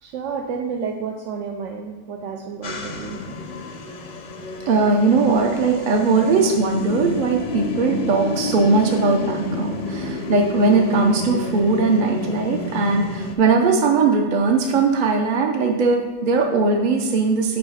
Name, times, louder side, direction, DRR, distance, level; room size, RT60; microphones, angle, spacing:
voice 1, 0.0-3.2, right 5 dB, 85° right, 1 dB, 0.9 m, -30 dB
sound 1, 2.6-13.3, left 2 dB, 50° left, 0.6 m, -30 dB
voice 2, 4.7-17.6, right 4 dB, 50° right, 2 dB, 0.7 m, -19 dB
5.2 x 4.8 x 5.6 m, 1.2 s
omnidirectional pair, 1.2 m